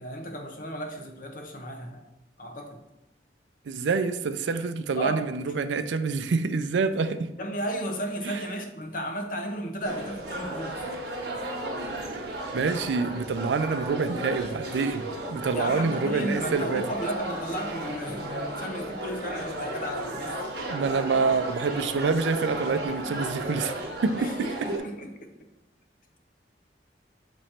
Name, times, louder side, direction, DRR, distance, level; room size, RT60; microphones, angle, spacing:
voice 1, 0.0-2.0 2.4-2.8 5.0-5.2 7.4-10.9 15.4-20.4 24.2-25.5, equal, 50° left, 5 dB, 0.8 m, -34 dB
voice 2, 3.7-7.3 12.5-16.8 20.7-23.7 24.0-24.7, right 4 dB, 90° right, 10 dB, 0.4 m, -27 dB
sound 1, 9.8-24.8, right 1 dB, 65° right, 1.0 m, -34 dB
7.6 x 3.0 x 4.3 m, 0.95 s
head